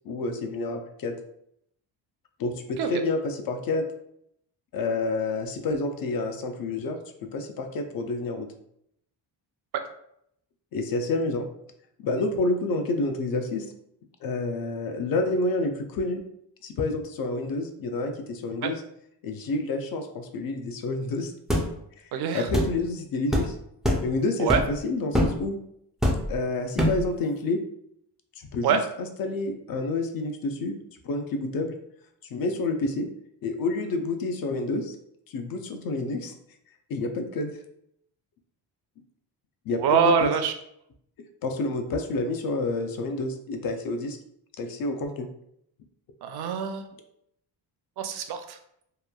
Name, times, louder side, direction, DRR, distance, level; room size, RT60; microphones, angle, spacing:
voice 1, 0.0-1.1 2.4-3.8 4.7-8.5 10.7-11.5 12.0-13.7 14.2-16.2 16.6-18.8 19.2-21.3 22.3-23.6 24.0-25.6 26.3-27.6 28.4-30.7 31.0-31.7 32.2-33.1 33.4-35.0 35.3-36.3 36.9-37.5 39.7-40.3 41.4-44.2 44.6-45.3, left 2 dB, 55° left, 6 dB, 0.5 m, -29 dB
sound 1, 21.5-21.7 22.5-22.7 23.3-23.5 23.8-24.1 24.5-24.8 25.1-25.4 26.0-26.4 26.8-27.1, equal, ahead, 0.3 m, -23 dB
voice 2, 22.1-22.4 24.4-24.6 28.6-28.8 39.8-40.5 46.2-46.9 48.0-48.6, right 7 dB, 65° right, 7 dB, 0.5 m, -24 dB
3.0 x 2.2 x 2.2 m, 0.73 s
cardioid pair, 105°, 43 cm